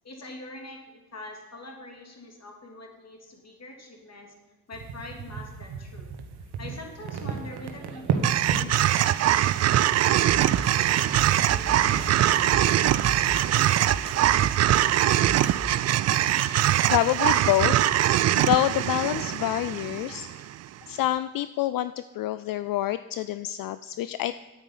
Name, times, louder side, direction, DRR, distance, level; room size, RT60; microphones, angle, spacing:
voice 1, 0.0-0.8 1.1-4.3 4.7-6.1 6.6-9.4 10.0-13.6 20.2-20.5, left 2 dB, 35° left, 2 dB, 2.7 m, -44 dB
sound 1, 4.7-13.1, right 6 dB, 55° right, 1.4 m, -35 dB
sound 2, 8.2-20.5, right 13 dB, 35° right, 0.4 m, -22 dB
Snare drum, 10.3-15.8, right 1 dB, 15° right, 1.2 m, -37 dB
voice 2, 16.4-20.3 20.9-24.3, left 14 dB, 50° left, 13 dB, 0.4 m, -27 dB
9.0 x 8.8 x 5.6 m, 1.2 s
hypercardioid pair, 50°, 47 cm